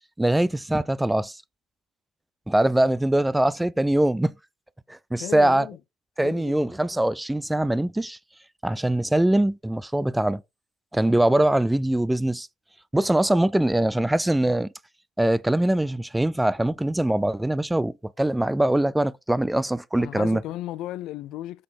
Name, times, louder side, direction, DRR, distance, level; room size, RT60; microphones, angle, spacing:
voice 1, 0.2-1.4 2.5-4.3 4.9-5.7 6.2-8.2 8.6-10.4 10.9-12.5 12.9-14.7 15.2-20.4, right 1 dB, 10° right, 0.4 m, -22 dB
voice 2, 5.2-5.8 6.2-6.9 20.0-21.6, left 14 dB, 70° left, 0.3 m, -35 dB
7.5 x 4.1 x 4.2 m
hypercardioid pair, 70°, 0 cm